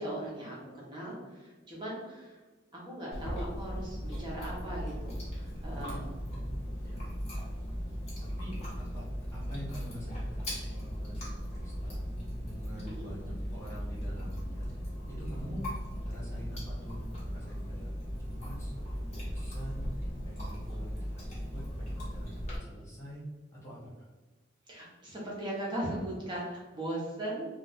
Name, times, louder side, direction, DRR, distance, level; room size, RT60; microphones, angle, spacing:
voice 1, 0.0-2.4 2.7-6.0 12.8-13.1 24.7-27.5, right 1 dB, 25° right, -5 dB, 0.8 m, -38 dB
Chewing mastication, 3.1-22.6, equal, 35° left, 1.1 m, -37 dB
voice 2, 5.7-6.5 6.8-7.0 8.2-12.0 12.4-14.7 15.1-15.7 16.1-17.9 18.2-18.7 19.1-19.9 20.2-23.2 23.5-24.1, equal, 15° left, -7 dB, 0.7 m, -46 dB
2.4 x 2.3 x 4.0 m, 1.2 s
head